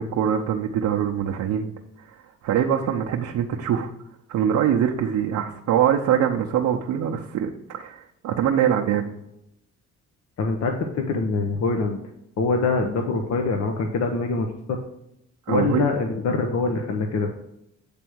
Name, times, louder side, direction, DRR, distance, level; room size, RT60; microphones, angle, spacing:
voice 1, 0.0-1.7 2.1-3.9 4.3-9.1 15.5-15.8, right 9 dB, 75° right, 0 dB, 0.7 m, -23 dB
voice 2, 10.4-12.0 12.4-14.8 15.5-17.3, left 3 dB, 60° left, 3 dB, 0.9 m, -24 dB
8.1 x 3.4 x 6.2 m, 0.82 s
cardioid pair, 90°, 30 cm